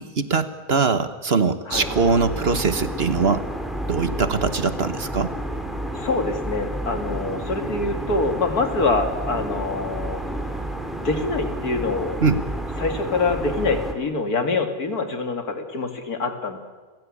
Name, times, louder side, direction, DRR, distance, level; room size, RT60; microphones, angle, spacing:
voice 1, 0.0-3.5 3.9-5.3 12.2-12.4, right 4 dB, 45° right, 11 dB, 1.3 m, -22 dB
sound 1, 1.7-13.9, right 1 dB, ahead, 2.5 m, -30 dB
voice 2, 5.9-10.2 11.0-12.2 12.8-16.6, left 3 dB, 90° left, 6 dB, 2.7 m, -25 dB
29.0 x 16.0 x 8.6 m, 1.4 s
omnidirectional pair, 1.6 m